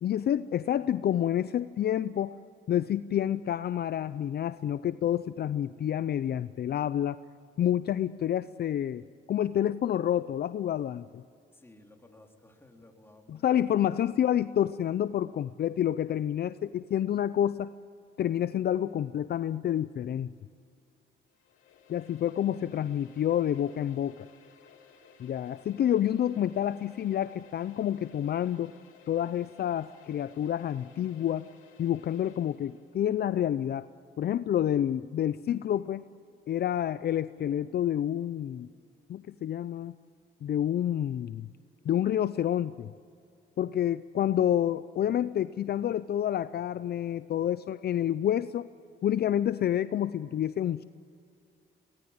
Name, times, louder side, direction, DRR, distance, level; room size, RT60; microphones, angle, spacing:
voice 1, 0.0-2.4 2.7-7.2 7.6-9.0 9.3-11.2 13.3-17.7 18.2-20.3 21.9-24.2 25.2-28.7 29.1-31.5 31.8-33.9 34.2-36.0 36.5-38.7 39.1-39.9 40.4-41.5 41.8-42.9 43.6-48.7 49.0-50.8, left 10 dB, 55° left, 14 dB, 0.6 m, -28 dB
voice 2, 11.5-13.8, left 1 dB, 10° left, 2 dB, 3.5 m, -56 dB
sound 1, 21.3-33.0, left 7 dB, 85° left, 3.1 m, -57 dB
23.0 x 18.5 x 8.8 m, 2.4 s
cardioid pair, 90°, 20 cm